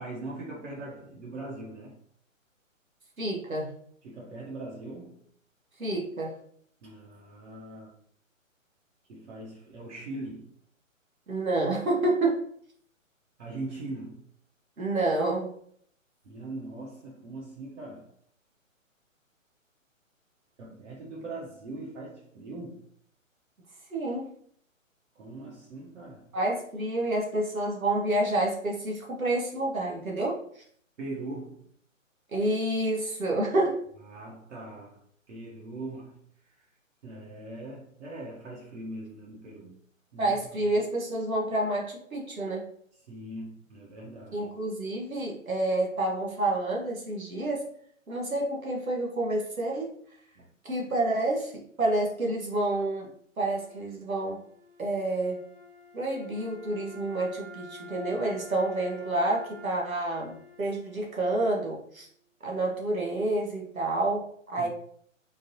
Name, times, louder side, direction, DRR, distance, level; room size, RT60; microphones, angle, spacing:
voice 1, 0.0-2.0 4.0-5.3 6.8-7.9 9.1-10.5 13.4-14.3 16.2-18.1 20.6-22.8 25.1-26.3 31.0-31.7 34.0-36.7 37.0-39.8 40.1-40.6 43.0-44.5 50.3-50.5 64.6-64.7, right 2 dB, 60° right, -4 dB, 1.1 m, -41 dB
voice 2, 3.2-3.7 5.8-6.3 11.3-12.4 14.8-15.5 23.9-24.2 26.3-30.6 32.3-33.8 40.2-42.6 44.3-47.6 48.1-49.9 50.6-53.1 53.4-54.4 54.8-55.4 55.9-62.1 62.4-64.7, right 2 dB, 90° right, -1 dB, 1.2 m, -29 dB
Wind instrument woodwind instrument, 53.3-62.4, left 2 dB, 20° right, 0.9 m, -50 dB
3.7 x 2.6 x 2.9 m, 0.63 s
figure-of-eight pair, 135°, 40 cm